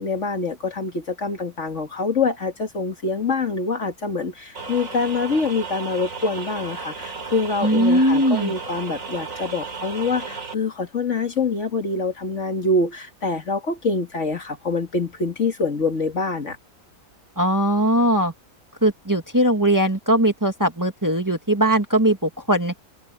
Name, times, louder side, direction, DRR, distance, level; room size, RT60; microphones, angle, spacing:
voice 1, 0.0-16.6, left 3 dB, 50° left, 2.3 m, -25 dB
sound 1, 4.5-10.5, right 4 dB, 55° right, 4.2 m, -34 dB
voice 2, 7.6-8.5 17.4-18.3 18.8-22.7, right 1 dB, 10° right, 1.9 m, -20 dB
omnidirectional pair, 1.6 m